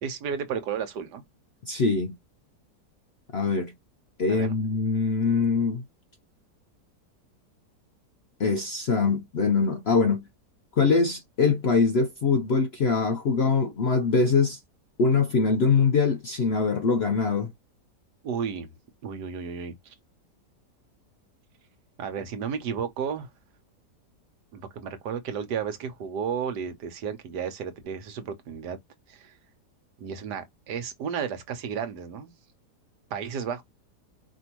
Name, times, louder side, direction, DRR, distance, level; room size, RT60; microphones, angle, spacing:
voice 1, 0.0-1.2 4.3-4.5 18.2-18.8 19.0-19.9 22.0-23.3 24.5-28.8 29.1-29.3 30.0-32.3 33.1-33.6, right 7 dB, 80° right, 1.5 m, -33 dB
voice 2, 1.7-2.2 3.3-3.7 4.2-5.8 8.4-10.3 10.8-14.6 15.0-17.5, left 4 dB, 65° left, 0.6 m, -23 dB
5.0 x 2.7 x 2.9 m
omnidirectional pair, 1.8 m